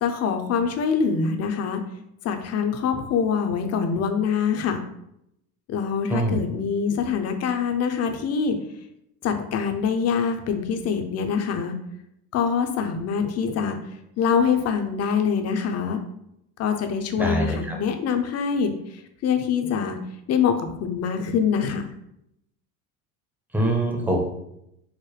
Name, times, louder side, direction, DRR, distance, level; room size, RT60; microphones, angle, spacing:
voice 1, 0.0-1.8 2.2-4.8 5.7-8.6 9.2-11.7 12.3-13.8 14.2-16.0 16.6-18.7 19.2-20.0 20.3-21.8, left 6 dB, 35° left, 7 dB, 0.5 m, -24 dB
voice 2, 17.2-17.8 23.5-24.2, right 1 dB, 5° right, 1 dB, 0.7 m, -24 dB
4.7 x 2.1 x 3.2 m, 0.78 s
supercardioid pair, 110°, 44 cm